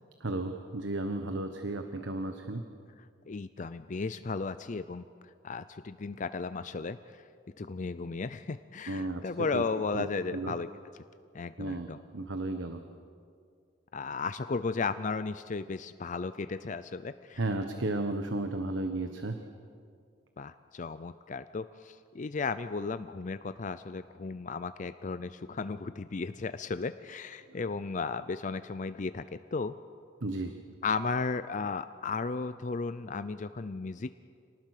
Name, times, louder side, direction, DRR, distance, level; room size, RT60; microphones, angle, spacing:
voice 1, 0.2-2.6 8.9-9.6 9.9-10.5 11.6-12.8 17.4-19.4 27.5-27.6 30.2-30.5, right 2 dB, 75° right, 6 dB, 1.2 m, -34 dB
voice 2, 3.3-7.2 7.6-10.7 11.3-12.0 13.9-17.4 20.4-29.7 30.8-34.1, left 4 dB, 40° left, 12 dB, 0.5 m, -35 dB
27.0 x 19.5 x 6.6 m, 2.2 s
head